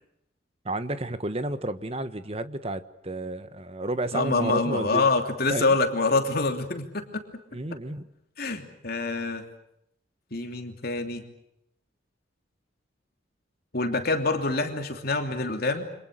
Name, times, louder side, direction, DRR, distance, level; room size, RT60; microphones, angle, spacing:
voice 1, 0.6-5.1 5.5-5.7 7.5-8.0, right 2 dB, 30° right, 1.4 m, -31 dB
voice 2, 4.1-7.1 8.4-9.4 10.3-11.2 13.7-15.9, left 3 dB, 50° left, 3.0 m, -26 dB
29.5 x 26.5 x 6.7 m
head